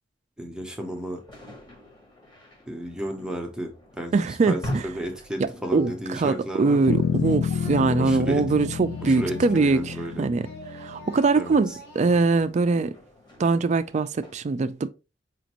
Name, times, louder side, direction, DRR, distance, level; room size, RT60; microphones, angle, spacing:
voice 1, 0.4-1.2 2.7-6.9 7.8-8.4 9.0-10.3 11.3-11.8, right 1 dB, 5° right, 0.7 m, -33 dB
sound 1, 0.7-14.3, equal, 25° left, 1.2 m, -44 dB
voice 2, 4.1-4.8 5.4-12.9 13.4-14.9, right 4 dB, 40° right, 0.3 m, -23 dB
Singing, 5.6-6.2 6.4-10.1 10.4-12.4, right 2 dB, 55° left, 1.0 m, -45 dB
Bass guitar, 6.9-11.3, left 7 dB, 75° left, 0.4 m, -29 dB
5.1 x 2.5 x 2.9 m
head